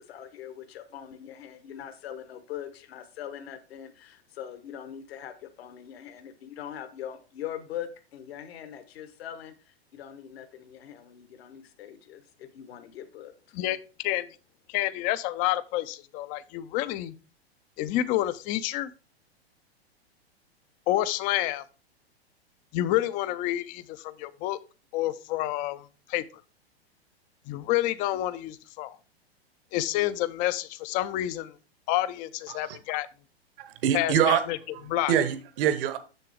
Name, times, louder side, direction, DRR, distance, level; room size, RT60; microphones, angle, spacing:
voice 1, 0.0-13.6, left 10 dB, 70° left, 10 dB, 1.1 m, -42 dB
voice 2, 13.5-14.3 14.7-17.2 17.8-18.9 20.9-21.6 22.7-24.6 24.9-26.2 27.5-29.0 29.7-31.6 31.9-33.1 33.9-34.6 34.9-35.1, left 14 dB, 25° left, 15 dB, 0.3 m, -29 dB
voice 3, 33.7-34.4 34.7-34.8 35.1-36.0, right 9 dB, 55° right, 11 dB, 1.1 m, -25 dB
6.9 x 6.6 x 3.4 m, 0.33 s
hypercardioid pair, 110°, 32 cm